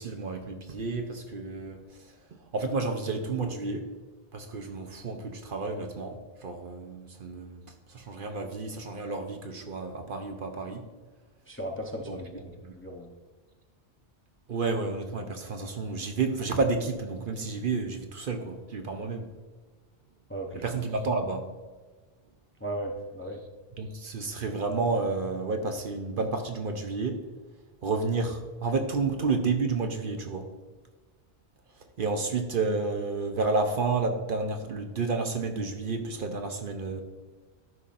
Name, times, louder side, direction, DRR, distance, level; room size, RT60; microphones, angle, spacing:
voice 1, 0.0-3.9 4.3-7.6 7.9-10.8 12.1-12.2 12.6-12.8 14.5-19.3 20.5-21.5 23.8-27.2 27.8-30.5 32.0-37.0, right 3 dB, 55° right, 5 dB, 0.8 m, -31 dB
voice 2, 11.5-13.1 20.3-20.6 22.6-23.4, right 1 dB, 15° left, 1 dB, 0.6 m, -36 dB
12.5 x 5.5 x 2.5 m, 1.4 s
omnidirectional pair, 1.2 m